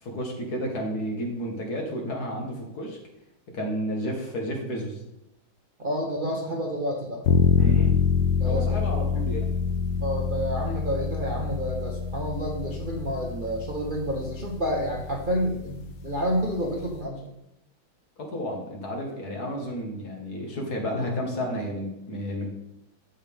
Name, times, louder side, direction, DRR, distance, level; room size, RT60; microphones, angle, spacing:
voice 1, 0.0-3.0 3.5-5.0 7.6-8.0 8.4-9.5 18.2-22.5, equal, 50° left, 0 dB, 2.0 m, -31 dB
voice 2, 5.8-7.2 8.4-8.8 10.0-17.3, equal, 35° right, -2 dB, 0.8 m, -29 dB
sound 1, 7.2-17.0, left 6 dB, 70° left, 0.8 m, -26 dB
10.5 x 7.4 x 3.6 m, 0.85 s
omnidirectional pair, 2.3 m